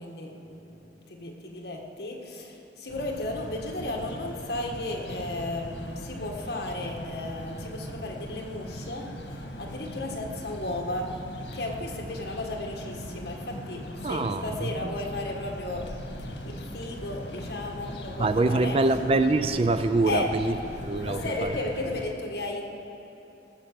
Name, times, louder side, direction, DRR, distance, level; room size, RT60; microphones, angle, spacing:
voice 1, 0.0-9.2 9.6-15.9 16.4-18.9 20.0-20.4 21.0-22.6, left 2 dB, 65° left, 1 dB, 1.6 m, -34 dB
sound 1, 2.9-22.1, equal, 85° left, 1.4 m, -39 dB
voice 2, 14.0-14.9 18.2-20.5 20.8-21.6, right 2 dB, 35° right, 11 dB, 0.4 m, -25 dB
18.0 x 7.4 x 6.8 m, 2.9 s
head